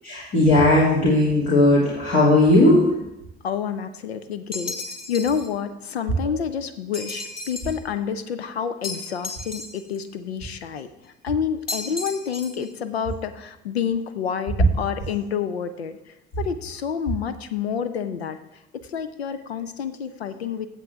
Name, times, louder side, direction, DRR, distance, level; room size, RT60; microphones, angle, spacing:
voice 1, 0.0-2.9, left 1 dB, 65° left, -7 dB, 2.8 m, -17 dB
voice 2, 3.4-4.8 5.1-16.0 16.4-18.4 18.7-20.7, left 7 dB, 90° left, 12 dB, 0.6 m, -28 dB
sound 1, 4.5-5.5 6.9-7.8 8.8-10.0 11.7-12.7, left 2 dB, 30° left, 1.7 m, -34 dB
15.5 x 7.7 x 3.5 m, 0.92 s
figure-of-eight pair, 50°, 31 cm